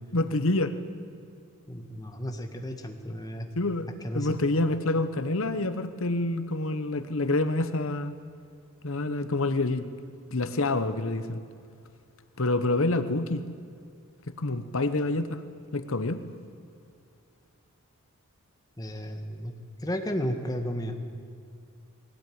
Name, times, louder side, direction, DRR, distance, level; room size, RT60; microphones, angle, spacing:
voice 1, 0.1-0.8 3.6-3.9 4.1-8.1 8.8-9.9 10.3-11.4 12.4-13.4 14.4-15.4 15.7-16.2, left 2 dB, 65° left, 11 dB, 1.0 m, -27 dB
voice 2, 1.7-3.5 4.0-4.3 18.8-19.5 19.8-20.9, equal, 15° left, 4 dB, 1.7 m, -33 dB
20.5 x 17.5 x 9.5 m, 2.4 s
head